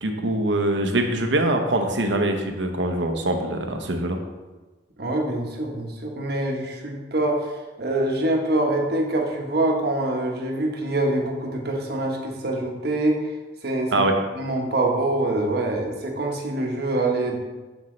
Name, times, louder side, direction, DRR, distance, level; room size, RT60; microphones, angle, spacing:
voice 1, 0.0-4.2 13.9-14.1, right 1 dB, 85° right, 5 dB, 0.9 m, -23 dB
voice 2, 5.0-7.5 7.8-13.2 13.6-14.0 14.3-17.4, right 2 dB, 60° right, 1 dB, 1.2 m, -25 dB
7.8 x 7.1 x 3.3 m, 1.2 s
head